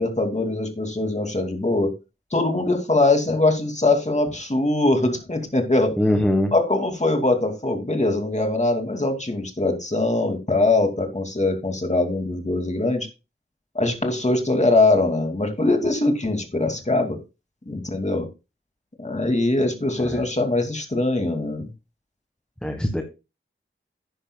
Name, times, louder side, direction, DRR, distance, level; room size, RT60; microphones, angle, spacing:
voice 1, 0.0-1.9 2.3-5.9 6.5-13.1 13.7-17.2 17.7-18.2 19.0-21.7, left 2 dB, 35° left, 4 dB, 2.5 m, -22 dB
voice 2, 6.0-6.5 20.0-20.2 22.6-23.0, left 1 dB, 5° left, 3 dB, 1.5 m, -22 dB
11.0 x 10.0 x 2.3 m, 0.27 s
wide cardioid pair, 60°, 21 cm